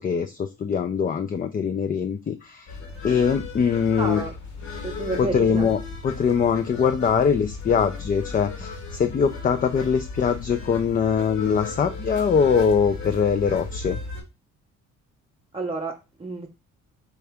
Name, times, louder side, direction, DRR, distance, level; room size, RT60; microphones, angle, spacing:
voice 1, 0.0-2.7 3.0-4.2 5.2-14.0, left 6 dB, 30° left, 0.4 m, -22 dB
sound 1, 2.7-14.2, left 4 dB, 70° left, 1.5 m, -36 dB
voice 2, 4.0-4.3 4.8-5.7 15.5-16.5, right 3 dB, 20° right, 0.7 m, -30 dB
4.7 x 2.6 x 3.4 m
cardioid pair, 90°, 30 cm